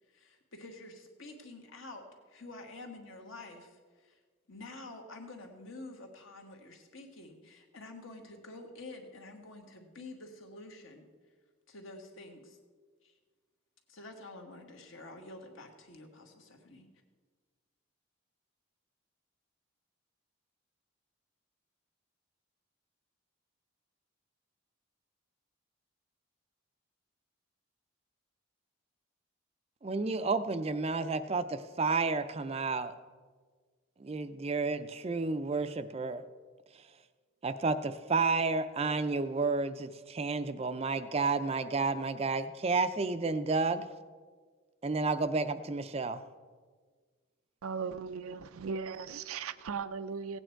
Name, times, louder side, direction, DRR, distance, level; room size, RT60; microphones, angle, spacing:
voice 1, 0.1-4.2 4.5-11.1 11.7-12.6 13.0-13.1 13.9-16.9, left 2 dB, 65° left, 3 dB, 1.6 m, -48 dB
voice 2, 29.8-32.9 34.0-36.3 37.4-43.9 44.8-46.2, right 4 dB, 30° right, 11 dB, 0.4 m, -31 dB
voice 3, 47.6-50.4, right 5 dB, 90° right, 13 dB, 0.5 m, -37 dB
16.0 x 8.9 x 4.5 m, 1.5 s
head